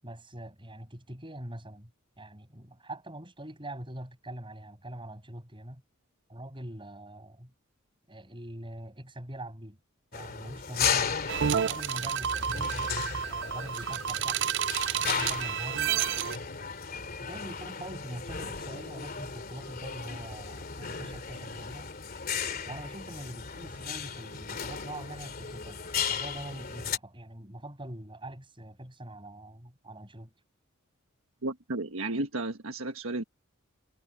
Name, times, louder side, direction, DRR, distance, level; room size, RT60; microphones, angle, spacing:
voice 1, 0.0-5.8 6.3-7.5 8.1-9.8 10.1-11.1 11.4-12.9 13.2-14.5 14.9-15.8 17.2-21.9 22.6-30.3, right 1 dB, 25° right, 7.7 m, -43 dB
sound 1, 10.1-27.0, left 6 dB, 45° left, 2.7 m, -35 dB
sound 2, 11.3-16.4, right 9 dB, 55° right, 0.5 m, -30 dB
voice 2, 31.4-33.2, right 2 dB, 75° right, 1.5 m, -33 dB
head